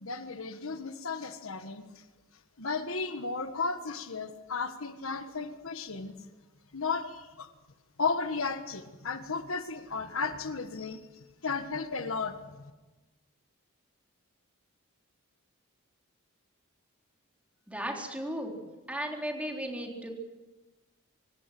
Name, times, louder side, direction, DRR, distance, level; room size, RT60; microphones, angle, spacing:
voice 1, 0.0-1.8 2.6-6.1 6.7-7.5 8.0-11.0 11.4-12.6, left 4 dB, 70° left, 9 dB, 1.5 m, -34 dB
voice 2, 17.7-18.5 18.9-20.1, equal, 5° right, 0 dB, 3.9 m, -35 dB
25.5 x 18.5 x 7.7 m, 1.2 s
head